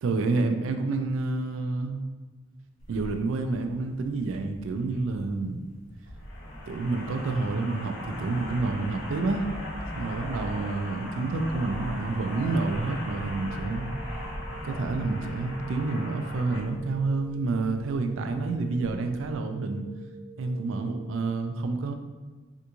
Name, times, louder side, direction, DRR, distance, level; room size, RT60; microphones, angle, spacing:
voice 1, 0.0-2.0 2.9-5.6 6.7-9.5 9.9-13.9 14.6-19.9 20.4-21.9, right 3 dB, 80° right, 6 dB, 0.3 m, -29 dB
sound 1, 2.8-19.4, left 1 dB, 85° left, 0.7 m, -39 dB
sound 2, 13.3-21.3, right 3 dB, 5° right, 0.6 m, -49 dB
3.4 x 2.5 x 2.9 m, 1.3 s
head